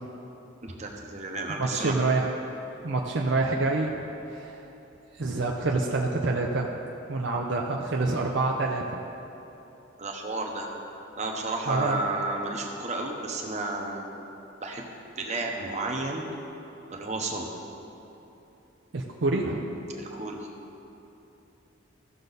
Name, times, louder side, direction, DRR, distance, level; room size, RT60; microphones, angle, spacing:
voice 1, 0.6-1.9 10.0-10.7 11.2-14.0 14.6-14.9 15.2-16.2 16.9-17.5 20.0-20.4, right 2 dB, 35° right, 1 dB, 1.0 m, -32 dB
voice 2, 1.5-2.3 2.8-4.6 5.1-6.7 7.1-9.0 11.7-12.0 18.9-19.8, right 3 dB, 60° right, 0 dB, 0.6 m, -27 dB
15.0 x 6.6 x 4.1 m, 3.0 s
head